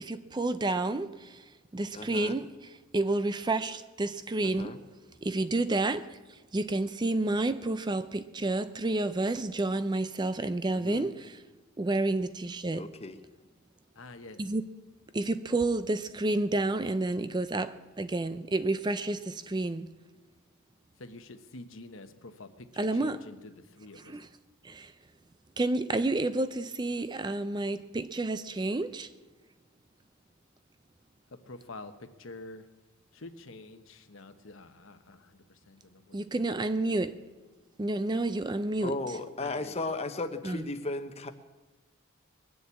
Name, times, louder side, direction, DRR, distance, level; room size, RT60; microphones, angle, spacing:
voice 1, 0.0-1.4 1.7-4.8 5.2-11.4 11.8-12.9 14.4-14.6 15.1-19.9 22.8-23.2 24.0-24.3 24.6-24.9 25.6-29.1 36.1-37.2 37.8-39.2 40.4-40.7, right 2 dB, 20° right, 0.4 m, -30 dB
voice 2, 1.9-2.3 4.4-4.8 10.7-11.0 12.8-13.2 38.8-41.3, left 2 dB, 30° left, 0.9 m, -35 dB
voice 3, 13.9-14.4 21.0-24.2 31.5-31.9 32.2-32.7 33.1-36.2 39.4-39.9, left 2 dB, 60° left, 1.1 m, -47 dB
21.5 x 7.2 x 8.3 m
head